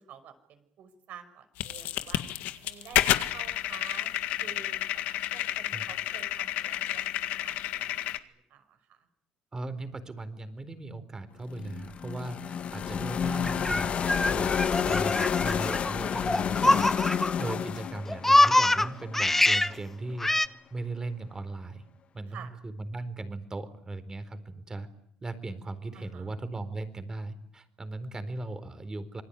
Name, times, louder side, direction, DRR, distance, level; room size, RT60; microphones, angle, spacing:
voice 1, 0.0-2.2 2.6-4.1 4.4-4.8 5.3-7.0 7.3-9.1 22.3-22.5 25.9-26.3, right 8 dB, 65° right, 9 dB, 5.8 m, -50 dB
sound 1, 1.6-8.2, left 13 dB, 75° left, 1.8 m, -30 dB
voice 2, 9.5-14.5 14.8-16.9 17.4-20.3 20.7-21.8 22.1-24.9 25.2-29.2, right 2 dB, 25° right, 12 dB, 4.2 m, -38 dB
sound 2, 11.5-19.5, left 7 dB, 50° left, 1.6 m, -30 dB
Laughter, 13.4-17.5 17.8-19.7 20.2-20.5, left 1 dB, 10° left, 1.1 m, -24 dB
26.5 x 20.5 x 10.0 m, 0.70 s
supercardioid pair, 85°, 3 cm